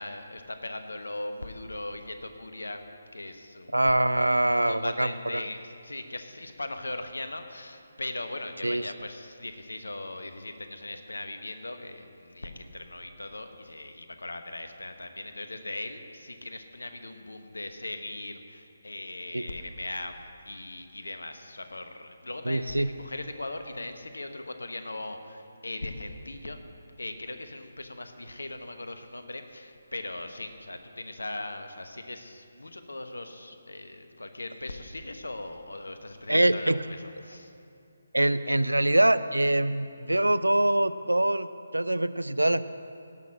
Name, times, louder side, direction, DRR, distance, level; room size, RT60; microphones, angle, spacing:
voice 1, 0.0-2.8 3.1-3.7 4.3-26.6 27.0-37.5, left 2 dB, 75° left, 7 dB, 1.1 m, -39 dB
voice 2, 3.7-5.4 8.6-8.8 19.3-19.5 22.5-22.9 36.3-36.8 38.1-41.5 41.7-42.6, right 1 dB, 85° right, 14 dB, 0.4 m, -24 dB
17.5 x 6.2 x 6.2 m, 2.6 s
figure-of-eight pair, 145°, 0 cm